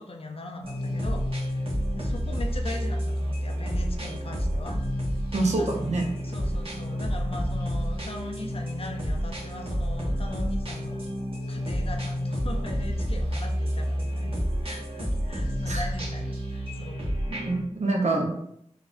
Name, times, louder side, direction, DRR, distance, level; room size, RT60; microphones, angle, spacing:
voice 1, 0.1-4.8 5.6-11.1 11.5-14.3 14.6-17.1 18.1-18.2, left 2 dB, 50° left, 4 dB, 0.5 m, -40 dB
sound 1, 0.6-17.6, equal, 50° right, 1.0 m, -29 dB
voice 2, 5.3-6.0 15.7-15.8 17.3-18.3, right 2 dB, 70° right, 1 dB, 0.6 m, -26 dB
3.8 x 2.5 x 2.4 m, 0.72 s
wide cardioid pair, 70°, 12 cm